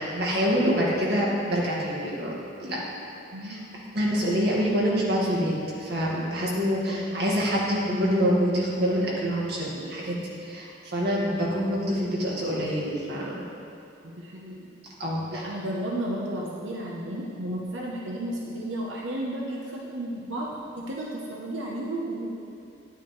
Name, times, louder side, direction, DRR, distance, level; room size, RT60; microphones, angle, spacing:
voice 1, 0.0-2.3 2.6-2.8 3.4-3.6 3.9-13.5 15.0-15.4, equal, 60° right, -5 dB, 1.9 m, -26 dB
voice 2, 3.3-3.7 6.9-7.2 14.0-14.7 15.3-20.5 20.7-22.3, right 1 dB, 80° right, -3 dB, 1.0 m, -33 dB
9.8 x 9.0 x 3.2 m, 2.7 s
head